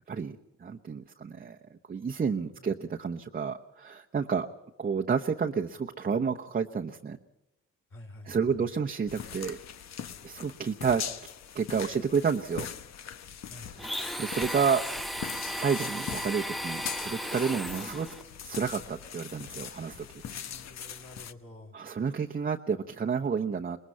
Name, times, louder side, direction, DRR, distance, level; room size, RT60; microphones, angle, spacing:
voice 1, 0.1-1.6 1.9-4.5 4.8-7.2 8.3-9.6 10.2-11.0 11.5-12.7 14.2-14.9 15.5-18.1 18.4-20.1 21.7-23.8, right 6 dB, 30° right, 2 dB, 0.9 m, -30 dB
voice 2, 7.9-8.7 13.5-13.7 20.2-21.8, left 1 dB, 45° left, 0 dB, 4.8 m, -49 dB
sound 1, 9.1-21.3, left 8 dB, 60° left, 1.1 m, -41 dB
Domestic sounds home sounds, 13.8-18.2, equal, ahead, 0.9 m, -35 dB
23.5 x 20.0 x 5.7 m, 0.94 s
cardioid pair, 90°, 30 cm